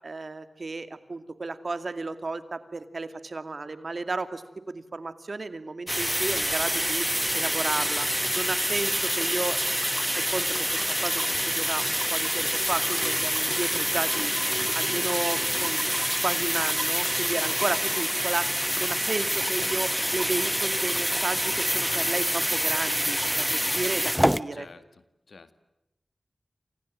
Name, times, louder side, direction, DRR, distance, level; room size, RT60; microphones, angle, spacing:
voice 1, 0.0-7.0 7.3-8.1 8.3-9.6 10.1-14.3 14.7-16.0 16.2-18.5 18.8-24.7, right 3 dB, 65° right, 11 dB, 2.4 m, -33 dB
sound 1, 5.9-24.4, equal, 5° right, 1.1 m, -26 dB
voice 2, 14.5-15.0 24.5-25.5, left 4 dB, 80° left, 12 dB, 2.0 m, -49 dB
28.5 x 28.0 x 7.6 m, 0.93 s
cardioid pair, 45°, 0 cm